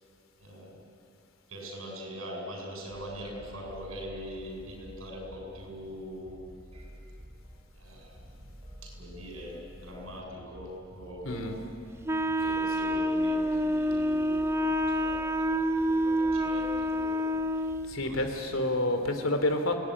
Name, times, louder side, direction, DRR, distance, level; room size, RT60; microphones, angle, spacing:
voice 1, 0.4-0.8 1.5-6.4 7.7-8.2 8.8-11.5 12.4-17.7 18.0-18.6, equal, 80° right, 0 dB, 7.9 m, -42 dB
sound 1, 2.9-18.2, equal, 30° right, 7.4 m, -50 dB
voice 2, 11.2-11.6 12.4-12.5 17.9-19.7, left 1 dB, 80° left, 6 dB, 3.1 m, -29 dB
Wind instrument woodwind instrument, 12.1-17.9, equal, 15° right, 0.6 m, -28 dB
28.5 x 19.0 x 9.8 m, 2.6 s
head